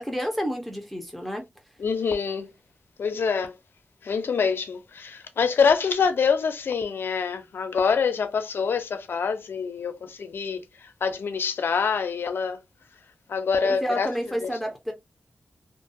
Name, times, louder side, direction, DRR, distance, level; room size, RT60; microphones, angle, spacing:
voice 1, 0.0-1.4 13.6-14.9, equal, ahead, 0.7 m, -30 dB
voice 2, 1.8-2.5 3.0-3.6 4.0-12.6 13.3-14.1 14.4-14.5, left 5 dB, 85° left, 0.5 m, -25 dB
2.5 x 2.2 x 2.6 m
wide cardioid pair, 85°, 4 cm